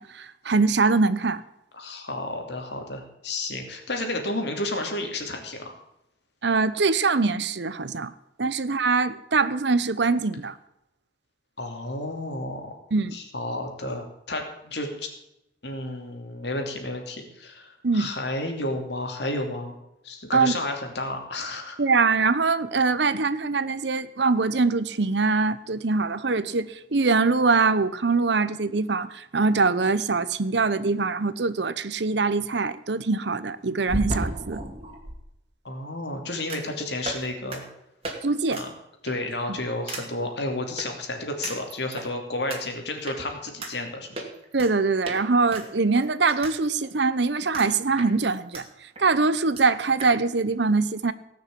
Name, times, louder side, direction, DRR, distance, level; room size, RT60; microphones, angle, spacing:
voice 1, 0.0-1.4 6.4-8.1 8.4-10.5 12.9-13.2 17.8-18.1 20.3-20.6 21.8-34.6 38.2-38.6 44.5-48.6 49.0-51.1, right 4 dB, 65° right, 0.8 m, -23 dB
voice 2, 1.7-5.7 11.6-12.8 13.1-15.1 15.6-19.7 20.0-21.8 35.6-37.6 38.5-38.7 39.0-44.3, left 2 dB, 65° left, 2.8 m, -31 dB
sound 1, 33.9-35.2 36.5-36.7 37.0-37.2 37.5-37.6 38.0-38.2 38.5-38.7 39.1-39.3 39.9-40.0 40.8-40.9 41.4-42.1 42.5-42.6 43.1-43.2 43.6-43.7 44.2-44.7 45.0-45.2 45.5-46.6 46.8-46.9 47.5-47.7 48.0-48.6 49.0-49.1 49.2-49.3 49.6-49.7 50.0-50.1, right 1 dB, 30° right, 2.4 m, -33 dB
18.0 x 6.4 x 8.4 m
head